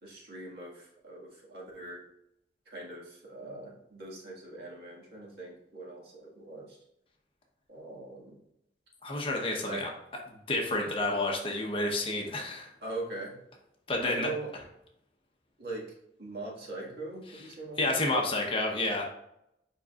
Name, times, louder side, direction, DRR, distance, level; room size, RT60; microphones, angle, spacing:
voice 1, 0.0-2.0 2.7-6.8 7.7-8.3 9.6-9.9 11.1-11.2 12.8-13.3 14.0-14.5 15.6-15.8 16.2-18.0, right 2 dB, 65° right, -3 dB, 1.8 m, -41 dB
voice 2, 9.0-9.9 10.5-12.7 13.9-14.3 17.8-19.1, left 2 dB, 30° left, 0 dB, 0.9 m, -29 dB
7.7 x 5.1 x 2.4 m, 0.81 s
head